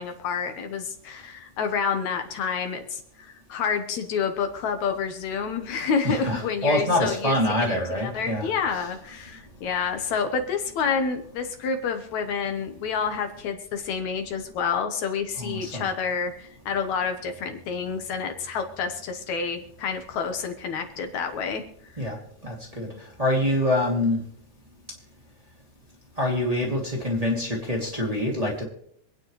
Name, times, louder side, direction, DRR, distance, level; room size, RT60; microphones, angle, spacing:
voice 1, 0.0-22.0 22.8-22.9, left 6 dB, 70° left, 6 dB, 2.4 m, -29 dB
voice 2, 6.0-8.9 15.4-15.9 22.0-22.2 22.4-22.9 23.2-24.2 26.2-28.6, left 1 dB, 15° right, -2 dB, 2.3 m, -25 dB
26.5 x 9.3 x 3.2 m, 0.68 s
omnidirectional pair, 3.5 m